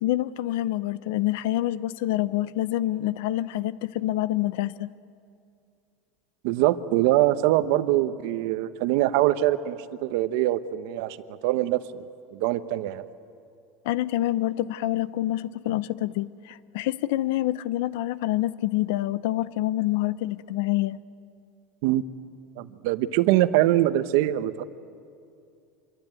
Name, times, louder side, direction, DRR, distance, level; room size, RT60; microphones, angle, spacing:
voice 1, 0.0-4.9 13.8-21.0, left 15 dB, 70° left, 0.7 m, -27 dB
voice 2, 6.4-11.2 11.4-12.0 12.3-13.1 21.8-22.0 22.6-24.6, right 14 dB, 65° right, 1.0 m, -23 dB
25.5 x 23.0 x 9.1 m
supercardioid pair, 165°, 0 cm